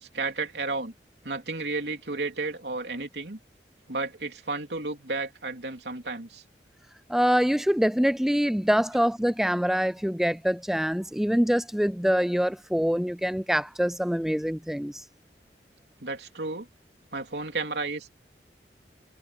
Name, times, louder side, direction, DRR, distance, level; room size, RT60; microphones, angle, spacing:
voice 1, 0.0-0.9 1.2-3.4 3.9-6.4 16.0-16.7 17.1-18.1, right 3 dB, 75° right, 3.2 m, -32 dB
voice 2, 7.1-15.0, equal, ahead, 0.4 m, -25 dB
head